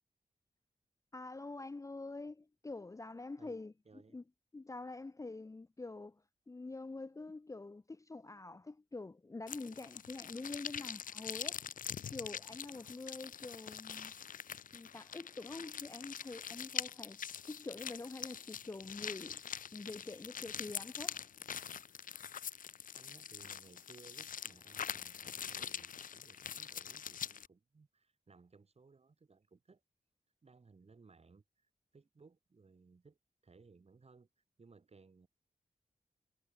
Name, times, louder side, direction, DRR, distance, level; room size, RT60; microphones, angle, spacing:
voice 1, 1.1-4.2 4.5-6.2 6.5-11.6 12.1-14.1 14.7-17.2 17.4-19.4 19.7-21.3, left 3 dB, 25° left, 0.6 m, -46 dB
voice 2, 3.4-4.2 22.9-29.8 30.4-31.7 31.9-33.2 33.4-34.3 34.6-35.3, right 4 dB, 50° right, 6.0 m, -62 dB
sound 1, 9.5-27.5, left 8 dB, 85° left, 0.7 m, -44 dB
wide cardioid pair, 95°, 14 cm